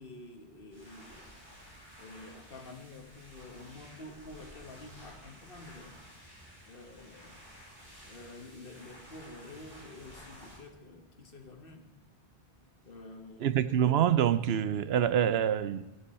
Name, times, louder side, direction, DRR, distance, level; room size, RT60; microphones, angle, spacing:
voice 1, 0.0-1.4 2.0-6.0 6.7-7.4 8.0-11.9 12.8-13.8, left 2 dB, 60° left, 5 dB, 1.5 m, -49 dB
sound 1, 0.7-10.6, equal, 65° right, 5.9 m, -53 dB
voice 2, 13.4-15.8, right 9 dB, 80° right, 14 dB, 0.9 m, -26 dB
14.5 x 11.5 x 4.2 m, 1.1 s
omnidirectional pair, 1.1 m